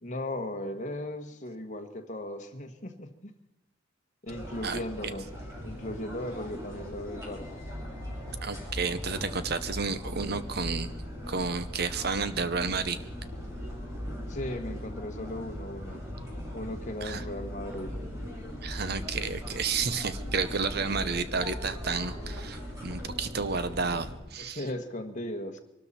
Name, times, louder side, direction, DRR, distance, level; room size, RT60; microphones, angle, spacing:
voice 1, 0.0-3.3 4.2-5.3 5.6-7.6 14.3-16.0 16.5-17.9 24.3-25.6, left 1 dB, 40° left, 4 dB, 1.4 m, -37 dB
sound 1, 4.3-24.2, equal, 15° right, 3.8 m, -39 dB
voice 2, 4.6-5.1 8.4-10.9 11.3-13.0 17.0-17.2 18.6-24.6, right 4 dB, 55° right, 12 dB, 0.8 m, -31 dB
23.5 x 13.0 x 4.2 m, 0.93 s
head